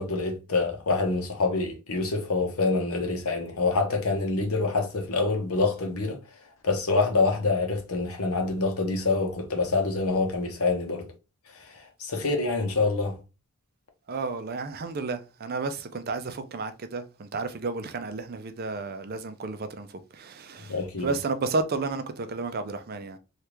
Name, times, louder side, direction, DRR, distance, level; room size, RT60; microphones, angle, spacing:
voice 1, 0.0-6.2 6.6-11.1 11.5-13.2 20.7-21.1, left 3 dB, 75° left, 0.9 m, -26 dB
voice 2, 14.1-23.2, right 3 dB, 45° right, 0.4 m, -32 dB
3.3 x 2.4 x 2.9 m
head